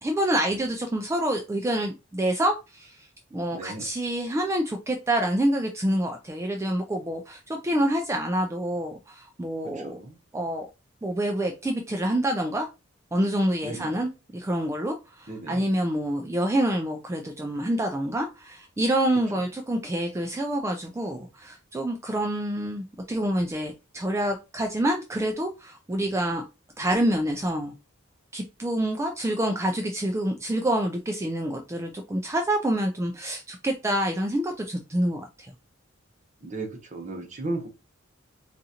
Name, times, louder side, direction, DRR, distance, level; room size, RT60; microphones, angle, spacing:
voice 1, 0.0-3.1 3.3-10.0 10.3-10.7 11.0-12.7 13.1-26.4 26.8-27.7 28.3-35.5, right 1 dB, 15° right, 0.3 m, -27 dB
voice 2, 3.5-3.9 9.6-10.2 13.6-14.0 15.3-15.7 36.4-37.7, right 2 dB, 40° right, 1.0 m, -35 dB
3.9 x 2.4 x 2.8 m
head